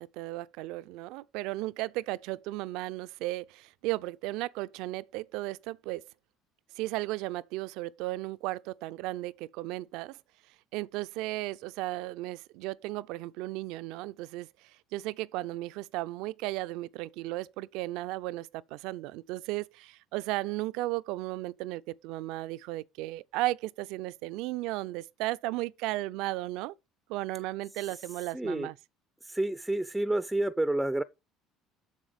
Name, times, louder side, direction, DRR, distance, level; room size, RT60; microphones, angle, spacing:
voice 1, 0.0-6.0 6.8-10.2 10.7-26.7 27.1-28.8, right 18 dB, 75° right, 0.4 m, -35 dB
voice 2, 28.3-28.7 29.2-31.0, right 1 dB, 5° right, 0.4 m, -29 dB
7.3 x 6.5 x 5.1 m
cardioid pair, 110°, 0 cm